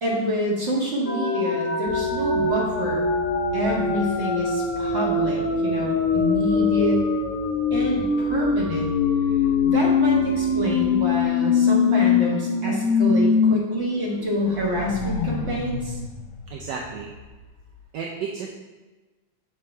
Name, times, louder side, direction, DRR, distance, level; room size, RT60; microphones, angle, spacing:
voice 1, 0.0-3.0 3.5-7.0 7.7-8.9 9.6-15.9, equal, 35° right, -4 dB, 1.6 m, -27 dB
sound 1, 1.1-13.5 13.9-14.0 14.3-17.0, left 4 dB, 85° left, 0.6 m, -23 dB
sound 2, 1.9-11.3, equal, 15° left, 1.2 m, -38 dB
voice 2, 16.5-17.1 17.9-18.5, right 6 dB, 70° right, -1 dB, 1.0 m, -32 dB
6.8 x 3.7 x 4.4 m, 1.2 s
omnidirectional pair, 2.4 m